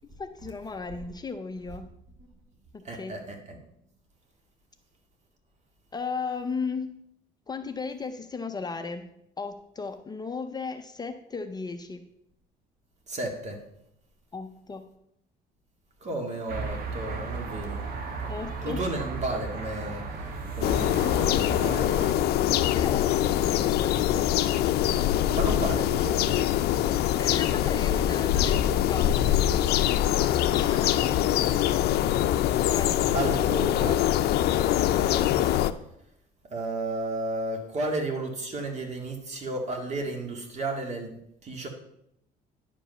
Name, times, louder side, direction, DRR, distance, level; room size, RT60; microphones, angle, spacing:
voice 1, 0.0-1.9 2.7-3.1 5.9-7.0 7.5-9.1 9.4-12.0 14.3-14.8 18.3-18.8 22.7-24.2 27.2-29.3 30.5-31.1 32.7-32.9, left 4 dB, 25° left, 7 dB, 0.6 m, -36 dB
voice 2, 2.8-3.6 13.1-13.6 16.0-17.9 18.6-21.9 25.3-26.5 32.5-34.2 36.4-41.7, right 2 dB, 40° right, 3 dB, 2.0 m, -33 dB
sound 1, 16.5-22.1, right 4 dB, 60° right, 1.4 m, -35 dB
sound 2, 20.6-35.7, left 12 dB, 70° left, 0.5 m, -24 dB
10.0 x 5.3 x 5.4 m, 0.76 s
cardioid pair, 110°, 17 cm